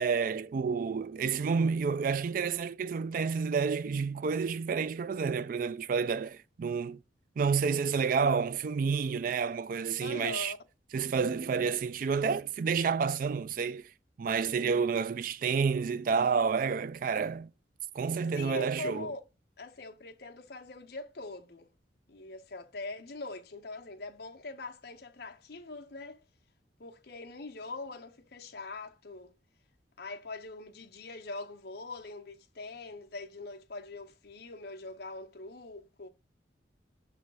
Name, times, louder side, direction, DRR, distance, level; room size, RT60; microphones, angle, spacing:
voice 1, 0.0-7.0 7.4-10.5 10.9-13.8 14.2-17.5 17.9-19.1, right 5 dB, 50° right, 0.3 m, -29 dB
voice 2, 10.0-10.6 18.3-19.2 19.6-21.7 22.1-26.2 26.8-29.3 30.0-36.1, left 3 dB, 60° left, 0.9 m, -42 dB
6.3 x 3.4 x 5.3 m
head